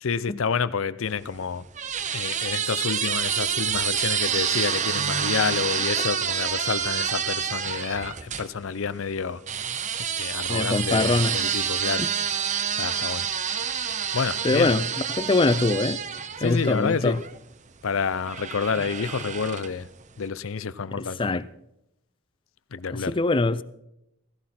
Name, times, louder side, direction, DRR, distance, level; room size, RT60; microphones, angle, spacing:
voice 1, 0.0-1.7 2.1-9.4 10.0-12.0 12.7-13.3 14.1-14.7 16.4-17.2 17.8-19.9 20.2-21.4 22.7-23.1, left 5 dB, 75° left, 0.6 m, -29 dB
sound 1, 1.1-8.5 9.5-17.4 18.3-19.9, right 8 dB, 35° right, 0.7 m, -28 dB
voice 2, 10.5-11.3 12.0-12.1 14.4-14.8 15.1-16.0 16.4-17.2 21.2-21.5 23.1-23.6, left 3 dB, 25° left, 0.5 m, -22 dB
16.5 x 15.5 x 4.4 m
head